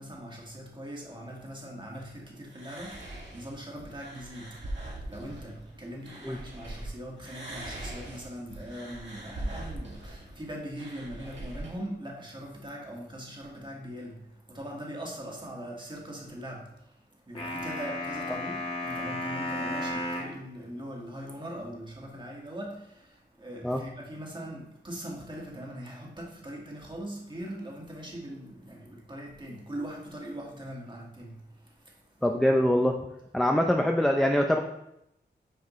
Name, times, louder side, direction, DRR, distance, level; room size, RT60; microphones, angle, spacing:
voice 1, 0.0-32.2, equal, 25° right, -2 dB, 1.8 m, -41 dB
sound 1, 2.5-6.9 7.2-11.7, right 1 dB, 85° right, 1.9 m, -41 dB
sound 2, 17.4-20.4, left 1 dB, 30° left, 1.9 m, -33 dB
voice 2, 32.2-33.0 33.3-34.6, left 1 dB, ahead, 3 dB, 0.5 m, -23 dB
9.5 x 4.8 x 3.1 m, 0.82 s
wide cardioid pair, 90°, 18 cm